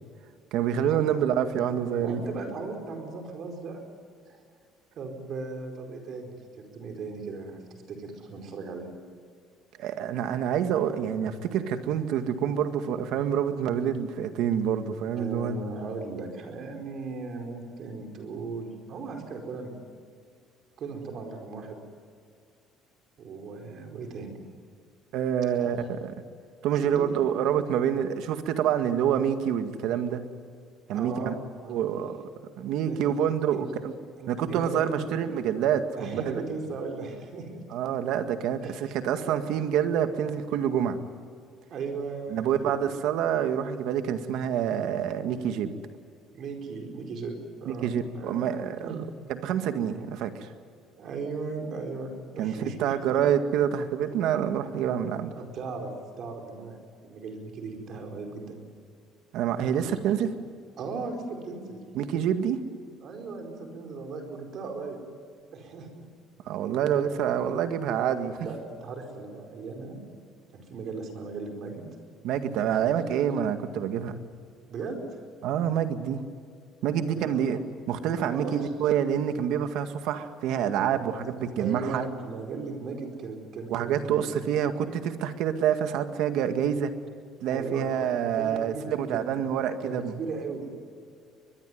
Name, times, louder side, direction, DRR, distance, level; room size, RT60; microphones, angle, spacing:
voice 1, 0.5-2.2 9.8-15.6 25.1-26.1 26.6-30.2 30.9-31.3 31.7-32.2 32.6-33.9 34.3-36.4 37.7-41.0 42.3-45.7 47.7-49.0 49.3-50.5 52.4-55.3 59.3-60.3 61.9-62.6 66.5-68.4 72.2-74.2 75.4-76.2 76.8-77.6 77.9-82.1 83.7-86.9 87.4-90.1, right 9 dB, 65° right, 8 dB, 2.0 m, -27 dB
voice 2, 2.0-3.8 4.3-4.4 5.0-9.0 15.2-19.7 20.8-21.8 23.2-24.4 25.5-25.7 26.7-27.1 30.9-31.3 31.6-31.8 32.8-33.1 33.5-33.6 34.2-35.0 36.0-37.6 38.6-38.8 39.2-39.5 41.7-42.8 46.3-48.5 48.8-49.1 51.0-53.1 55.4-58.6 59.7-60.0 60.8-61.8 63.0-65.0 65.5-66.1 66.7-67.2 68.4-70.0 70.5-71.9 72.7-72.9 74.7-75.0 77.1-77.4 78.2-78.7 81.6-84.2 87.5-89.2 89.8-90.7, right 4 dB, 40° right, 4 dB, 4.7 m, -37 dB
23.0 x 21.5 x 9.5 m, 2.2 s
cardioid pair, 175°, 0 cm